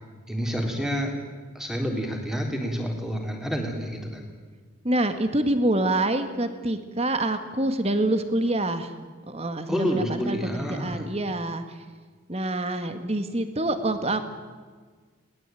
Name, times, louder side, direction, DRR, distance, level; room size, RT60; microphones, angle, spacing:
voice 1, 0.3-1.1 1.6-4.2 9.7-11.0, equal, ahead, 2 dB, 3.5 m, -28 dB
voice 2, 4.8-8.9 9.3-11.8 12.3-14.3, right 1 dB, 30° right, 9 dB, 1.8 m, -26 dB
21.5 x 19.0 x 9.2 m, 1.5 s
head